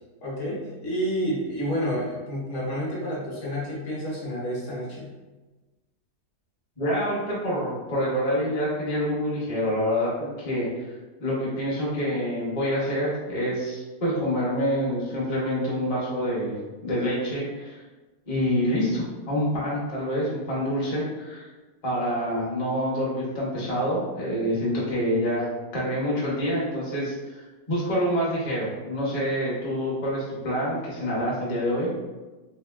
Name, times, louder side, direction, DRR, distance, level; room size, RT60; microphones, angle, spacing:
voice 1, 0.2-5.1, equal, 55° left, -6 dB, 1.0 m, -29 dB
voice 2, 6.8-10.7 11.2-16.5 16.8-17.8 18.3-21.5 21.8-31.9, equal, 40° left, -6 dB, 0.5 m, -27 dB
2.9 x 2.8 x 2.3 m, 1.2 s
omnidirectional pair, 1.7 m